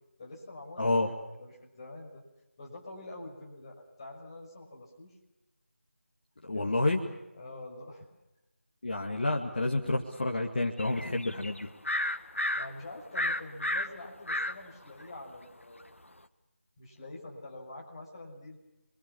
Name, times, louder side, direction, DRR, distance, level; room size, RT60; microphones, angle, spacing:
voice 1, 0.2-2.2 2.6-5.1 6.5-7.0 7.3-8.1 12.6-15.8 16.8-18.6, left 2 dB, 25° left, -2 dB, 5.7 m, -46 dB
voice 2, 0.8-1.1 6.4-7.0 8.8-11.7, left 2 dB, 40° left, 1 dB, 2.3 m, -29 dB
sound 1, 10.8-12.7 13.1-14.5 15.0-15.1, left 1 dB, 70° left, 1.8 m, -31 dB
29.5 x 24.0 x 7.2 m, 0.96 s
figure-of-eight pair, 165°, 7 cm